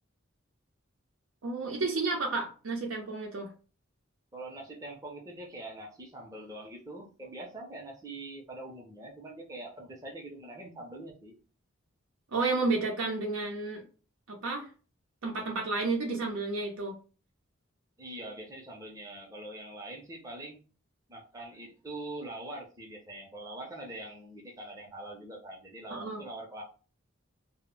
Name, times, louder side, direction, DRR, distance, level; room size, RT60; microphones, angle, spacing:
voice 1, 1.4-3.5 12.3-13.8 14.3-14.7 15.2-17.0 25.9-26.2, right 3 dB, 85° right, 0 dB, 0.6 m, -31 dB
voice 2, 4.3-11.3 18.0-20.6 21.1-26.6, right 1 dB, 15° right, -1 dB, 0.5 m, -43 dB
2.0 x 2.0 x 3.6 m, 0.36 s
head